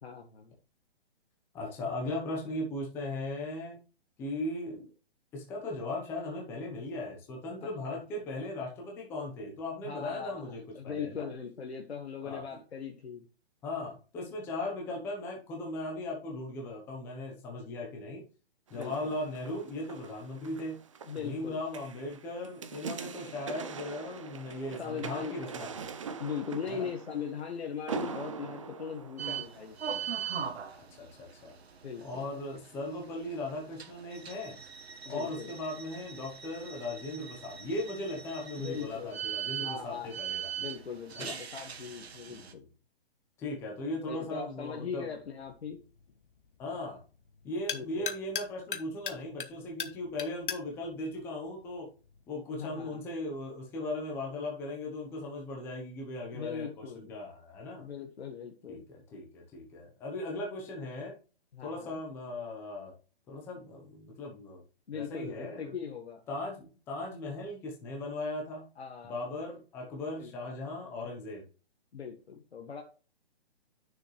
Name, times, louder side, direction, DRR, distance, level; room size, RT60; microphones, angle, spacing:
voice 1, 0.0-0.5 7.6-8.0 9.8-13.3 18.7-19.2 21.0-21.6 24.8-25.4 26.2-30.1 31.8-32.2 35.0-35.5 38.6-39.2 39.6-40.1 40.6-42.6 44.1-45.8 47.7-48.1 52.5-53.0 56.3-57.1 57.8-58.8 61.5-62.0 64.9-66.2 68.8-69.3 70.2-70.5 71.9-72.8, left 7 dB, 80° left, 2 dB, 1.7 m, -40 dB
voice 2, 1.5-3.8 4.2-4.9 5.3-11.3 12.2-12.4 13.6-18.2 18.7-20.8 21.2-25.9 26.7-26.9 30.7-31.5 32.0-34.6 35.1-40.5 41.1-41.4 42.3-42.6 43.4-45.1 46.6-47.0 47.4-51.9 52.3-57.8 58.7-61.2 61.6-62.9 63.3-64.6 64.9-65.7 66.3-68.7 69.0-71.4, left 2 dB, 5° left, -1 dB, 0.9 m, -38 dB
sound 1, 18.7-29.9 30.5-30.6, right 5 dB, 30° right, 0.6 m, -43 dB
sound 2, 29.2-42.5, right 8 dB, 75° right, 1.5 m, -41 dB
sound 3, 44.6-52.2, left 7 dB, 55° left, 1.2 m, -42 dB
9.5 x 6.6 x 3.2 m, 0.36 s
hypercardioid pair, 165°, 32 cm